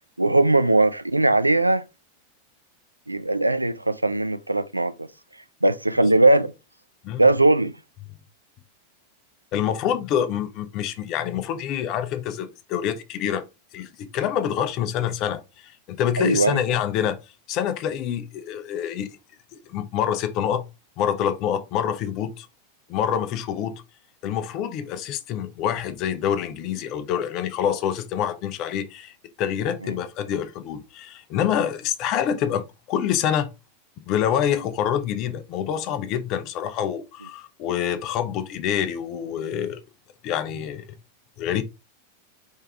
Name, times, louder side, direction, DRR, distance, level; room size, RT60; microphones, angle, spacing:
voice 1, 0.2-1.8 3.1-5.1 5.6-6.5 7.2-7.7 16.2-16.6 29.8-29.9, right 2 dB, 85° right, 0.3 m, -19 dB
voice 2, 9.5-13.4 13.7-17.2 17.5-19.2 19.5-20.7 21.0-22.5 22.9-23.8 24.2-33.5 34.1-39.8 40.2-40.8 41.4-41.6, left 9 dB, 40° left, 0.6 m, -26 dB
4.5 x 3.4 x 3.4 m
figure-of-eight pair, 90°, 0 cm